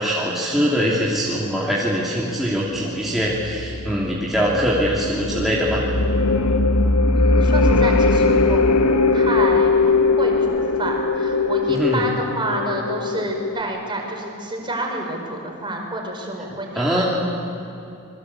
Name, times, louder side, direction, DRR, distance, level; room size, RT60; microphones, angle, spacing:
voice 1, 0.0-5.8 11.7-12.0 16.7-17.0, equal, ahead, -6 dB, 2.9 m, -22 dB
sound 1, 3.3-13.6, left 3 dB, 75° left, 1.3 m, -20 dB
voice 2, 7.1-17.0, right 1 dB, 20° right, 1 dB, 5.0 m, -29 dB
27.5 x 22.5 x 8.4 m, 2.7 s
head